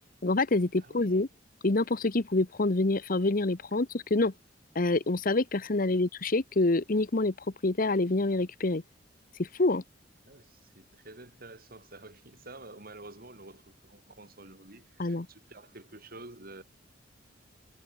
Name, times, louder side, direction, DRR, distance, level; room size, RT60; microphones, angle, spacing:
voice 1, 0.2-1.3 1.6-4.3 4.7-7.3 7.6-8.8 9.4-9.8 15.0-15.3, left 2 dB, 50° left, 1.0 m, -26 dB
voice 2, 0.8-1.2 5.9-6.0 10.2-16.6, right 2 dB, 50° right, 5.8 m, -49 dB
head